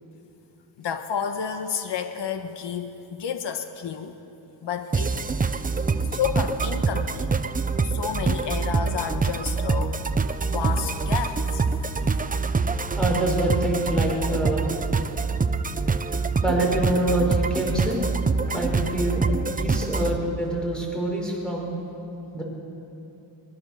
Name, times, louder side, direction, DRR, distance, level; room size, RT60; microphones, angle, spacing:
voice 1, 0.8-4.1 4.6-5.6 6.1-7.3 7.8-10.1 10.5-12.4, left 7 dB, 70° left, 7 dB, 1.3 m, -31 dB
sound 1, 4.9-20.2, right 4 dB, 20° right, 0.7 m, -25 dB
voice 2, 13.0-14.7 16.4-18.0 18.5-21.7 22.3-22.4, right 1 dB, ahead, -2 dB, 5.5 m, -26 dB
23.0 x 22.0 x 6.6 m, 2.9 s
wide cardioid pair, 130°, 43 cm